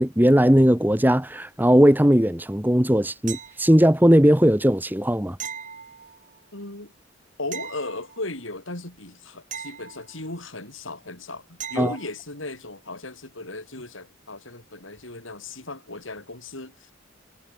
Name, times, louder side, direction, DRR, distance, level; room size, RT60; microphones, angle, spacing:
voice 1, 0.0-5.4 11.8-11.9, equal, 10° right, 1.8 m, -18 dB
sound 1, 3.3-4.0 5.4-6.5 7.5-8.5 9.5-10.5 11.6-12.2 15.0-15.1, right 8 dB, 40° right, 3.4 m, -39 dB
voice 2, 6.5-6.9 7.4-16.9, left 2 dB, 90° left, 7.2 m, -36 dB
head